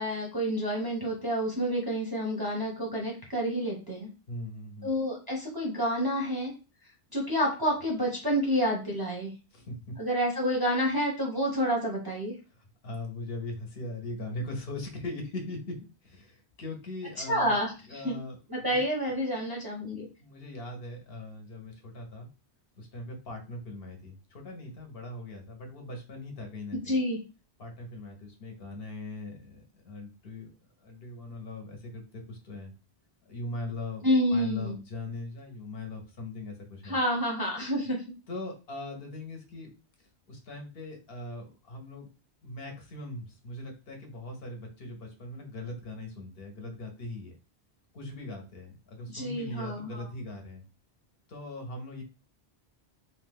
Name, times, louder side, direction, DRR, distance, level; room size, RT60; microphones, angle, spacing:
voice 1, 0.0-4.1 4.8-6.5 7.1-9.3 10.0-12.3 17.3-18.1 18.5-20.1 26.9-27.2 34.0-34.8 36.8-38.0 49.1-50.1, equal, 30° right, -2 dB, 0.5 m, -29 dB
voice 2, 4.3-4.9 9.5-10.0 12.5-17.6 17.9-18.8 20.2-22.3 22.8-27.0 27.6-30.5 30.8-32.7 33.3-34.0 34.3-37.0 38.3-39.7 40.3-42.1 42.4-47.3 47.9-50.6 51.3-52.0, left 2 dB, 65° left, 3 dB, 0.9 m, -40 dB
2.7 x 2.1 x 3.3 m, 0.32 s
omnidirectional pair, 1.1 m